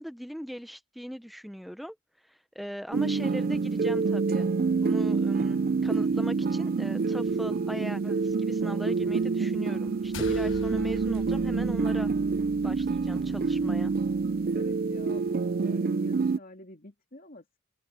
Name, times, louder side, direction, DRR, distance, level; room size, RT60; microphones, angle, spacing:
voice 1, 0.0-2.0 2.3-4.5 4.8-12.1 12.6-14.0, equal, ahead, 0.7 m, -39 dB
sound 1, 2.9-16.4, right 4 dB, 45° right, 0.4 m, -27 dB
sound 2, 10.1-14.7, left 2 dB, 75° left, 1.2 m, -43 dB
voice 2, 14.5-17.6, left 1 dB, 45° left, 2.9 m, -48 dB
open air
head